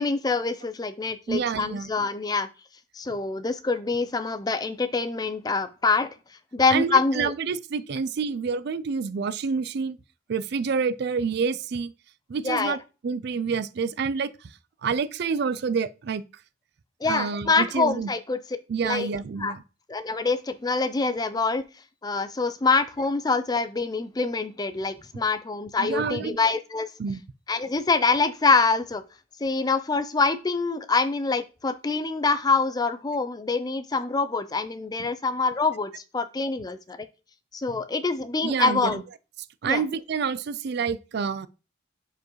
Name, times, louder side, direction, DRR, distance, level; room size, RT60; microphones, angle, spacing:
voice 1, 0.0-2.5 2.9-6.1 6.5-7.3 12.4-12.8 17.0-18.4 18.8-19.1 19.4-19.5 19.9-21.6 22.0-26.9 27.5-29.0 29.4-37.1 37.5-39.0 39.7-39.8, left 4 dB, 20° left, 0.4 m, -25 dB
voice 2, 1.3-1.9 6.7-10.0 10.3-11.9 12.3-14.5 14.8-16.2 17.0-18.1 18.7-19.6 25.8-26.4 27.0-27.2 38.4-39.0 39.6-41.5, right 5 dB, 55° right, 0.4 m, -28 dB
6.9 x 4.7 x 3.1 m
head